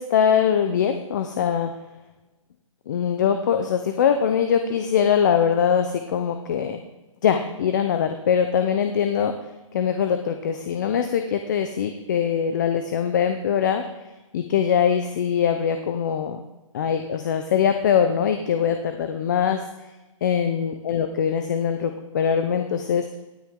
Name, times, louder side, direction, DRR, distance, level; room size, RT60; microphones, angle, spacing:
voice 1, 0.0-1.7 2.9-6.8 7.2-9.4 9.7-13.9 14.3-16.4 16.7-19.7 20.2-23.1, left 8 dB, 35° left, 7 dB, 0.6 m, -22 dB
17.0 x 9.3 x 3.7 m, 1.1 s
hypercardioid pair, 165°, 17 cm